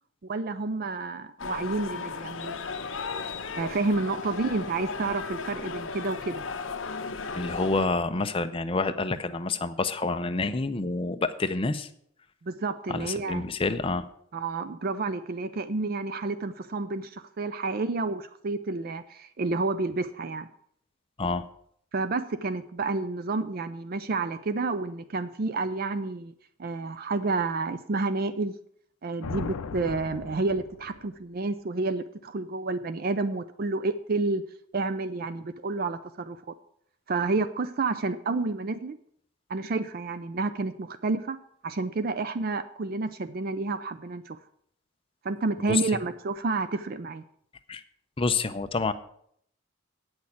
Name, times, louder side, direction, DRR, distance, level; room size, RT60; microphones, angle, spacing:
voice 1, 0.2-2.5 3.6-6.4 12.5-13.4 14.3-20.5 21.9-26.3 26.6-28.5 29.0-34.4 34.7-36.4 37.1-39.0 39.5-41.4 41.6-44.4 45.2-47.2, right 3 dB, 40° right, 12 dB, 0.4 m, -30 dB
sound 1, 1.4-7.9, left 4 dB, 60° left, 0.8 m, -35 dB
voice 2, 7.3-11.9 12.9-14.0 21.2-21.4 45.7-45.8 47.7-47.8 48.2-48.9, left 3 dB, 25° left, 9 dB, 0.5 m, -28 dB
sound 2, 29.2-31.2, left 5 dB, 80° left, 0.5 m, -37 dB
8.7 x 6.3 x 8.3 m, 0.68 s
head